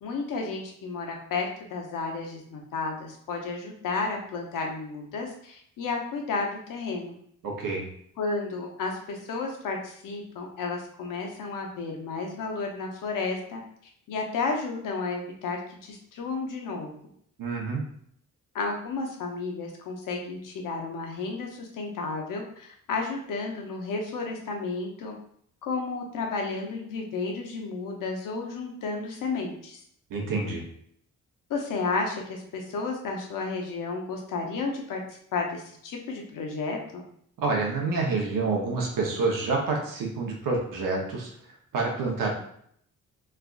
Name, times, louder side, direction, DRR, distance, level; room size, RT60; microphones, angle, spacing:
voice 1, 0.0-7.2 8.2-13.6 14.1-16.9 18.5-25.1 25.6-29.8 31.5-35.0 35.3-37.0, left 4 dB, 85° left, 1 dB, 0.8 m, -32 dB
voice 2, 7.4-7.9 17.4-17.8 30.1-30.6 37.4-41.3 41.7-42.3, right 3 dB, 85° right, -1 dB, 0.9 m, -27 dB
3.4 x 2.4 x 2.4 m, 0.66 s
cardioid pair, 135°, 32 cm